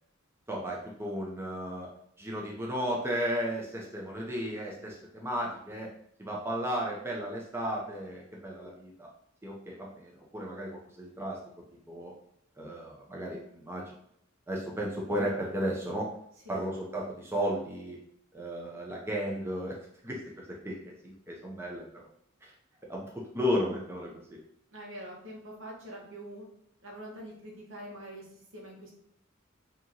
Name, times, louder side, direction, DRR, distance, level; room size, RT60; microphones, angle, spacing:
voice 1, 0.5-1.9 2.2-5.9 6.2-9.1 9.4-11.4 11.9-12.1 12.6-13.9 14.5-16.1 16.5-18.0 18.3-19.8 20.0-22.1 22.4-22.5 22.9-24.4, equal, 10° right, -2 dB, 0.6 m, -34 dB
voice 2, 24.7-26.5 26.8-28.9, right 1 dB, 70° right, -2 dB, 1.3 m, -44 dB
4.9 x 2.9 x 2.9 m, 0.70 s
head